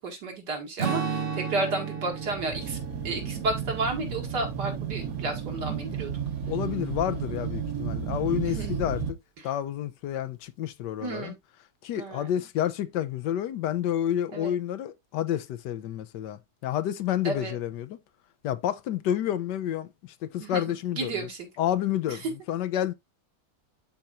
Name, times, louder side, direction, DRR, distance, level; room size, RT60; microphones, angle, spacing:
voice 1, 0.0-2.8 3.0-6.1 8.4-8.8 9.4-9.5 11.0-11.4 11.9-12.3 14.3-14.5 17.2-17.5 20.4-21.5 22.1-22.2, right 3 dB, 75° right, 2.7 m, -32 dB
Strum, 0.8-5.5, right 6 dB, 40° right, 1.0 m, -35 dB
sound 1, 2.1-9.1, right 7 dB, 60° right, 1.5 m, -33 dB
voice 2, 6.5-9.0 9.4-11.3 11.8-18.0 18.4-21.3 21.6-22.9, left 11 dB, 80° left, 1.3 m, -29 dB
11.5 x 4.4 x 2.5 m
omnidirectional pair, 1.8 m